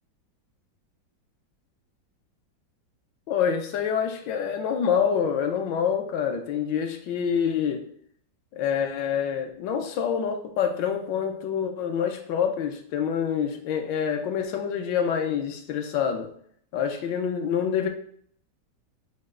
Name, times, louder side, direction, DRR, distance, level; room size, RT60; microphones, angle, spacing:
voice 1, 3.3-7.8 8.6-16.3 16.7-17.9, left 7 dB, 75° left, 5 dB, 1.3 m, -26 dB
6.4 x 2.3 x 3.6 m, 0.62 s
omnidirectional pair, 2.0 m